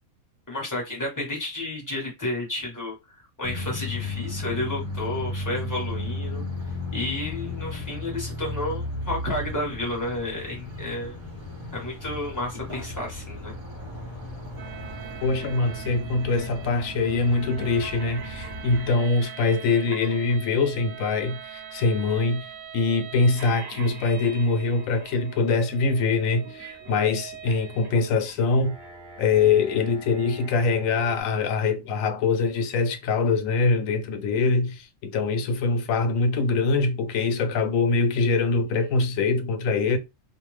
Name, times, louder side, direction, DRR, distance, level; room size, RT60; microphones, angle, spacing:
voice 1, 0.5-6.4 6.9-11.2 11.7-13.6, left 2 dB, 15° left, 1.1 m, -31 dB
sound 1, 3.4-18.9, left 2 dB, 25° right, 0.8 m, -35 dB
sound 2, 14.6-31.2, right 7 dB, 55° right, 1.0 m, -42 dB
voice 2, 15.2-22.5 22.7-28.7 29.2-40.0, left 4 dB, 80° left, 1.0 m, -23 dB
2.7 x 2.2 x 3.1 m
omnidirectional pair, 1.4 m